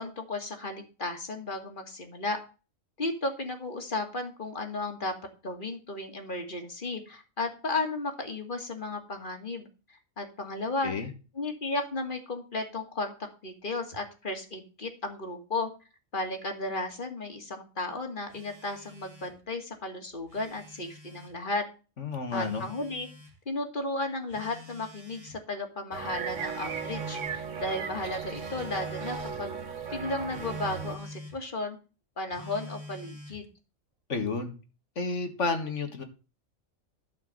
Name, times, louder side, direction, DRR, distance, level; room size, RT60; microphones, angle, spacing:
voice 1, 0.0-2.4 3.0-5.1 5.4-10.9 11.4-15.7 16.1-21.6 22.3-23.1 23.5-29.5 29.9-31.8 32.2-33.5, left 2 dB, 40° left, 2.2 m, -34 dB
Telephone, 18.3-19.4 20.1-21.3 22.3-23.3 24.3-25.4 26.3-27.4 28.3-29.4 30.3-31.4 32.3-33.4, left 1 dB, 25° right, 2.0 m, -46 dB
voice 2, 22.0-22.7 34.1-34.6 35.0-36.0, left 4 dB, 60° left, 2.0 m, -31 dB
sound 1, 25.9-31.0, right 6 dB, 65° right, 1.4 m, -36 dB
12.0 x 4.6 x 7.8 m
omnidirectional pair, 1.4 m